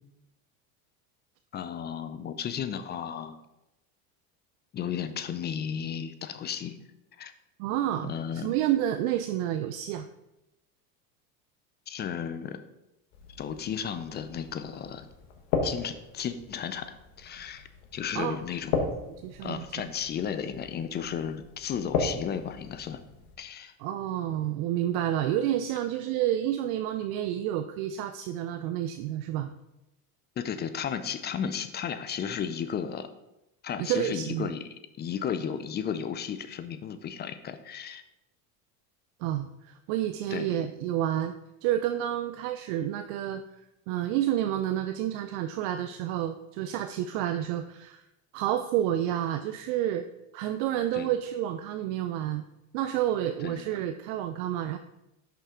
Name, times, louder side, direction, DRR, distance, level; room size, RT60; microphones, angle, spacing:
voice 1, 1.5-3.4 4.7-6.8 7.2-7.3 8.0-8.5 11.9-12.6 13.4-15.1 15.6-18.9 19.4-23.0 23.4-23.7 30.4-33.1 33.6-34.7 35.0-38.0 40.3-40.5 50.9-51.1 53.4-53.7, left 8 dB, 25° left, 11 dB, 0.4 m, -34 dB
voice 2, 7.6-10.1 18.1-18.4 19.2-19.6 23.8-29.5 33.8-34.5 39.2-41.4 41.6-43.4 43.9-48.0 48.3-50.0 50.3-52.4 52.7-54.8, right 12 dB, 65° right, 8 dB, 0.5 m, -29 dB
sound 1, 13.1-23.4, left 4 dB, 70° left, 1.3 m, -36 dB
5.7 x 5.7 x 3.7 m, 0.92 s
supercardioid pair, 100°, 44 cm